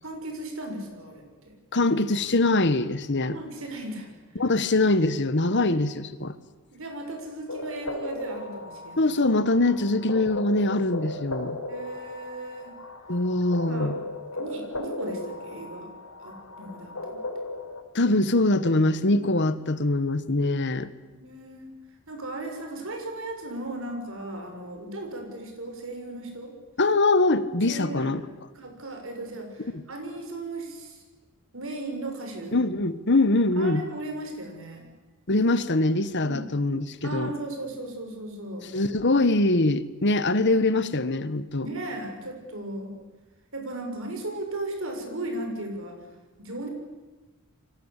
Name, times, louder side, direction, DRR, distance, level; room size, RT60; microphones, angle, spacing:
voice 1, 0.0-1.5 3.2-4.4 5.4-5.9 6.7-9.1 11.7-12.8 13.7-13.9 14.3-15.9 16.2-17.2 20.8-21.7 22.1-26.5 27.6-28.1 28.5-31.0 31.5-32.6 33.6-34.9 36.2-36.4 37.0-38.7 41.6-42.9 43.5-46.0 46.4-46.7, right 2 dB, 65° right, 4 dB, 6.8 m, -36 dB
voice 2, 1.7-3.4 4.3-6.3 9.0-11.6 13.1-13.9 17.9-20.9 26.8-28.2 29.7-29.8 32.5-33.8 35.3-37.3 38.7-41.7, left 2 dB, 55° left, 14 dB, 1.4 m, -23 dB
sound 1, 7.5-17.8, left 2 dB, 80° left, 4.1 m, -36 dB
29.5 x 24.5 x 8.3 m, 1.2 s
head